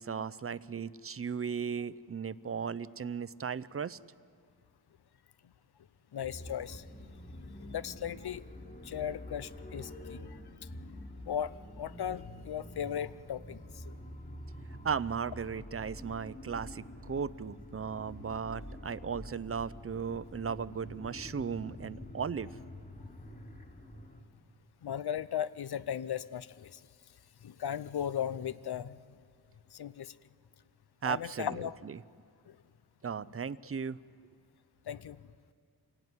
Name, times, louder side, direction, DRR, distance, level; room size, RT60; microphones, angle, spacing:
voice 1, 0.0-4.0 14.8-22.5 31.0-31.5 31.8-31.9 33.0-34.0, right 6 dB, 35° right, 17 dB, 0.6 m, -36 dB
voice 2, 6.1-6.8 7.6-8.4 8.8-10.7 11.2-14.0 24.8-26.8 27.4-29.0 29.7-30.2 31.0-31.8 32.5-32.6 34.9-35.2, left 9 dB, 70° left, 16 dB, 0.8 m, -37 dB
sound 1, 6.2-24.2, left 1 dB, 25° left, 3.3 m, -47 dB
27.0 x 17.0 x 9.6 m, 2.2 s
wide cardioid pair, 80°, 40 cm